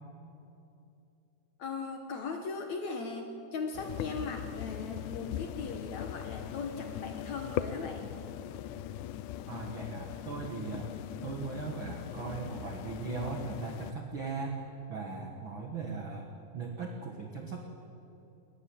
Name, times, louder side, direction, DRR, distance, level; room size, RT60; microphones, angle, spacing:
voice 1, 1.6-8.2, left 4 dB, 65° left, 5 dB, 1.9 m, -38 dB
sound 1, 3.7-13.9, left 11 dB, 85° left, 1.8 m, -40 dB
voice 2, 9.4-14.6 14.9-16.3 16.5-17.6, right 4 dB, 55° right, 3 dB, 1.4 m, -38 dB
21.5 x 19.0 x 7.6 m, 2.9 s
omnidirectional pair, 4.5 m